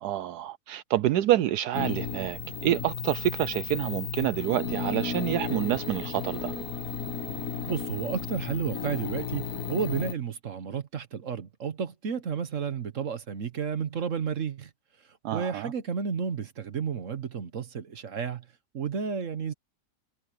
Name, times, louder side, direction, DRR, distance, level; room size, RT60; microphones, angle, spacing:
voice 1, 0.0-6.5 15.2-15.7, right 13 dB, 75° right, 1.1 m, -28 dB
sound 1, 1.7-10.1, left 6 dB, 60° left, 2.1 m, -34 dB
voice 2, 7.7-14.7 15.3-18.4 18.7-19.5, right 6 dB, 55° right, 1.4 m, -32 dB
omnidirectional pair, 1.7 m